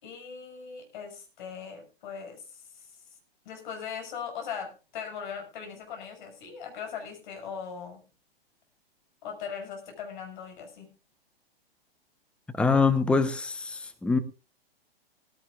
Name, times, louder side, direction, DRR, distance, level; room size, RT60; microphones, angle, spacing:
voice 1, 0.0-2.9 3.4-8.0 9.2-10.9, left 7 dB, 50° left, 4 dB, 6.2 m, -39 dB
voice 2, 12.5-14.2, left 4 dB, 5° left, 10 dB, 0.9 m, -24 dB
18.5 x 15.5 x 2.4 m, 0.32 s
figure-of-eight pair, 115°, 31 cm